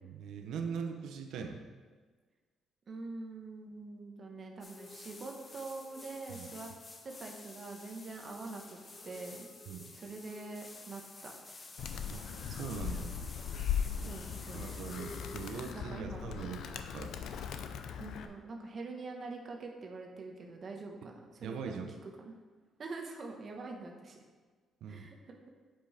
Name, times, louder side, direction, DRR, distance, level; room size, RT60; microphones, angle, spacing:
voice 1, 0.1-1.6 6.3-6.5 9.7-9.8 12.1-12.2 12.5-13.1 14.5-17.2 21.0-21.1 21.4-21.9 24.8-25.1, right 6 dB, 70° right, 5 dB, 0.7 m, -41 dB
voice 2, 2.9-6.7 7.0-9.5 9.9-11.3 13.9-16.2 18.0-22.3 22.8-24.2 24.9-25.4, right 3 dB, 35° right, 1 dB, 1.0 m, -45 dB
sound 1, 4.6-15.7, left 3 dB, 20° left, 0.6 m, -50 dB
Animal, 11.8-18.3, left 8 dB, 65° left, 0.5 m, -39 dB
8.1 x 5.4 x 4.9 m, 1.5 s
cardioid pair, 175°, 0 cm